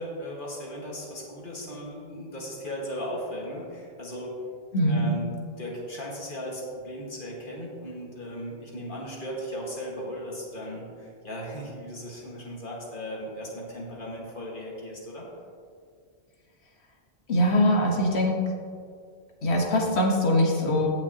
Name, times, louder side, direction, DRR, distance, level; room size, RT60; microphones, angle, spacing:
voice 1, 0.0-4.4 4.9-5.3 5.6-15.3, equal, 45° left, -3 dB, 1.9 m, -37 dB
voice 2, 4.7-5.2 17.3-18.4 19.4-20.9, equal, 65° left, 0 dB, 1.6 m, -22 dB
16.0 x 5.9 x 2.9 m, 2.2 s
omnidirectional pair, 1.2 m